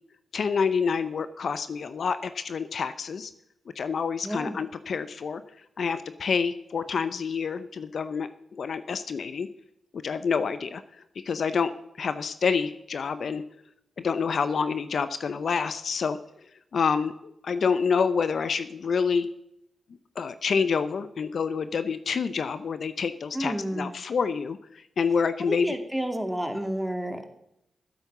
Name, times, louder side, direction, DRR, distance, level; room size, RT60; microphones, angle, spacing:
voice 1, 0.3-3.3 3.8-5.4 5.8-9.5 9.9-10.8 11.2-11.7 12.0-13.4 14.0-16.2 16.7-19.3 20.2-25.7, left 5 dB, 65° left, 12 dB, 0.7 m, -27 dB
voice 2, 4.2-4.6 23.3-23.9 25.4-27.3, right 1 dB, 5° right, 6 dB, 2.4 m, -30 dB
12.0 x 8.3 x 6.8 m, 0.78 s
supercardioid pair, 40°, 0 cm